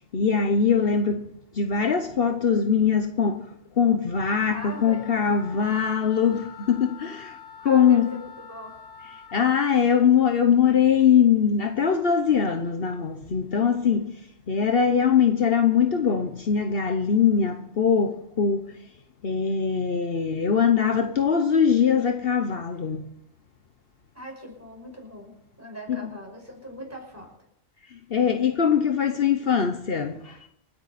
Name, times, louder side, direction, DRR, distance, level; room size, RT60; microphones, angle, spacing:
voice 1, 0.1-1.3 1.5-3.5 3.8-8.1 9.3-14.1 14.5-18.8 19.2-23.1 25.9-26.1 27.9-30.4, left 7 dB, 60° left, 1.1 m, -22 dB
Wind instrument woodwind instrument, 4.1-9.4, left 8 dB, 80° left, 4.8 m, -45 dB
voice 2, 4.5-5.1 5.5-5.6 7.6-8.7 24.1-25.3 25.6-27.3, right 1 dB, 15° right, 5.2 m, -39 dB
28.0 x 9.8 x 4.2 m
omnidirectional pair, 1.1 m